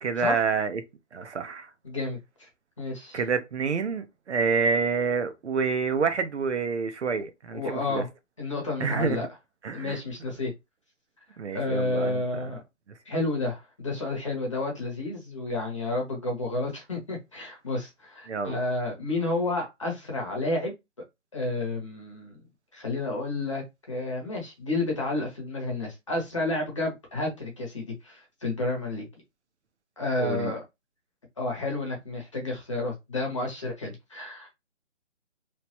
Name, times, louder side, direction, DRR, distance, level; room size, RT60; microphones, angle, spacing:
voice 1, 0.0-0.8 1.1-1.7 3.1-8.0 8.8-9.2 9.6-10.0 11.4-12.4 18.3-18.5 30.2-30.5, right 5 dB, 65° right, 0.6 m, -28 dB
voice 2, 1.8-2.5 2.8-3.2 7.5-8.1 8.4-9.3 9.7-10.5 11.5-12.6 13.1-20.7 21.3-22.4 22.7-29.1 30.0-30.6 31.4-34.5, left 2 dB, 25° left, 0.7 m, -30 dB
3.1 x 2.1 x 2.7 m
hypercardioid pair, 165°, 37 cm